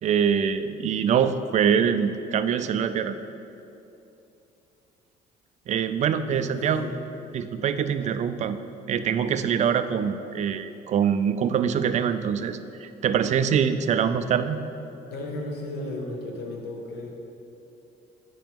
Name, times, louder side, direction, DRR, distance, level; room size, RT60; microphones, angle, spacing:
voice 1, 0.0-3.2 5.7-6.9 7.3-8.6 8.9-14.6, right 7 dB, 45° right, 11 dB, 0.4 m, -24 dB
voice 2, 6.2-7.0 15.1-17.1, left 2 dB, 75° left, 0 dB, 1.3 m, -34 dB
9.0 x 5.1 x 3.6 m, 2.8 s
cardioid pair, 110°, 17 cm